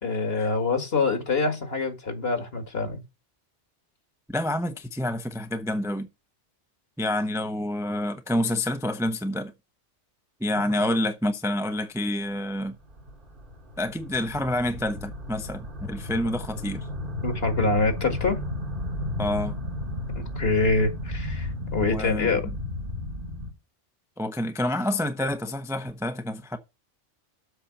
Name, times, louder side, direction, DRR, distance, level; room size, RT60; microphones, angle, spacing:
voice 1, 0.0-3.0 17.2-18.4 20.1-22.4, left 3 dB, 55° left, 2.2 m, -25 dB
voice 2, 4.3-6.1 7.0-9.5 10.4-12.7 13.8-16.9 19.2-19.6 21.9-22.3 24.2-26.6, left 1 dB, 5° right, 0.6 m, -28 dB
sound 1, 12.7-23.5, left 1 dB, 45° right, 1.7 m, -33 dB
7.8 x 5.7 x 7.0 m
omnidirectional pair, 1.2 m